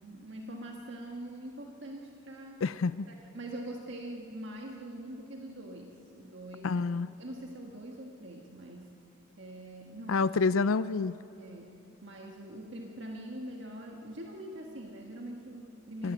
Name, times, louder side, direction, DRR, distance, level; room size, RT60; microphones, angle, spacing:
voice 1, 0.0-2.6 3.1-6.7 7.2-8.9 9.4-10.2 11.4-16.1, right 1 dB, 60° right, 0 dB, 1.7 m, -43 dB
voice 2, 2.6-3.1 6.6-7.1 10.1-11.1 16.0-16.1, left 4 dB, 90° left, 15 dB, 0.5 m, -28 dB
24.0 x 15.0 x 9.3 m, 2.7 s
head